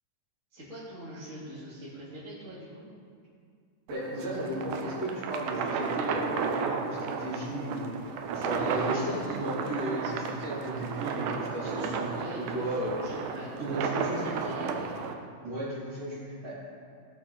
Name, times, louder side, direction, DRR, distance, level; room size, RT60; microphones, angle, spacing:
voice 1, 0.5-2.8 8.5-9.4 11.6-14.9, equal, 20° right, -10 dB, 3.0 m, -43 dB
voice 2, 3.9-12.2 12.5-12.9 13.6-14.2 15.4-16.6, right 1 dB, 45° right, -10 dB, 4.0 m, -35 dB
sound 1, 3.9-15.1, right 5 dB, 75° right, 2.0 m, -33 dB
18.5 x 6.8 x 4.2 m, 2.2 s
omnidirectional pair, 4.1 m